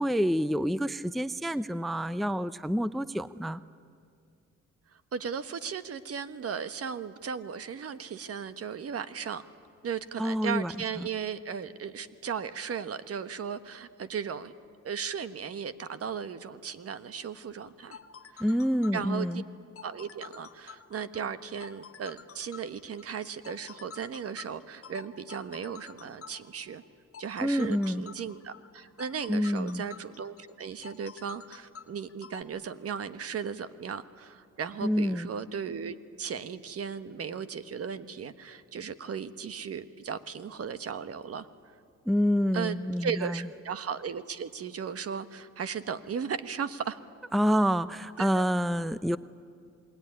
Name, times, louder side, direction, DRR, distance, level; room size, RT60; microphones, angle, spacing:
voice 1, 0.0-3.6 10.2-10.7 11.0-11.1 18.4-19.4 27.4-28.0 29.3-29.8 34.8-35.3 42.1-43.5 47.3-49.2, equal, ahead, 15 dB, 0.6 m, -27 dB
voice 2, 5.1-9.4 9.8-14.5 14.8-18.0 18.3-18.4 18.9-19.3 19.8-26.8 27.2-41.5 42.5-47.0 48.2-48.4, right 7 dB, 50° right, 12 dB, 1.3 m, -36 dB
sound 1, 17.7-32.4, left 6 dB, 45° left, 1.8 m, -49 dB
27.5 x 20.0 x 9.9 m, 2.3 s
cardioid pair, 90°, 30 cm